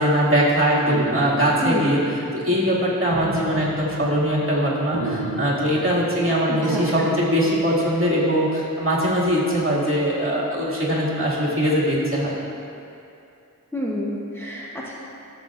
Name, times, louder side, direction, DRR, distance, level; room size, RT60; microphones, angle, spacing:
voice 1, 0.0-2.0 2.3-12.3, equal, 40° right, -7 dB, 2.2 m, -21 dB
sound 1, 0.9-2.8 3.1-4.6 4.9-6.3 6.6-8.0, right 1 dB, 65° right, 1.0 m, -31 dB
voice 2, 1.6-1.9 6.5-7.1 13.7-14.9, equal, 5° left, -5 dB, 1.0 m, -29 dB
14.5 x 7.6 x 2.5 m, 2.7 s
wide cardioid pair, 55°, 34 cm